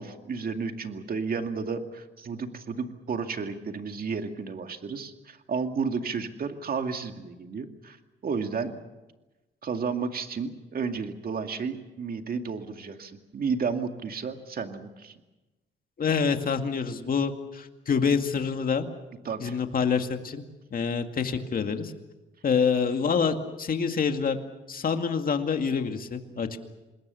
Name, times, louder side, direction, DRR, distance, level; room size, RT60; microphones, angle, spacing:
voice 1, 0.0-8.0 8.2-8.7 9.6-15.1 19.2-19.6 26.3-26.4, right 5 dB, 50° right, 6 dB, 2.3 m, -32 dB
voice 2, 16.0-18.9 19.4-20.5 20.7-21.9 22.4-24.4 24.7-26.6, left 6 dB, 45° left, 6 dB, 2.2 m, -26 dB
26.5 x 21.0 x 7.0 m, 1.1 s
cardioid pair, 90°, 20 cm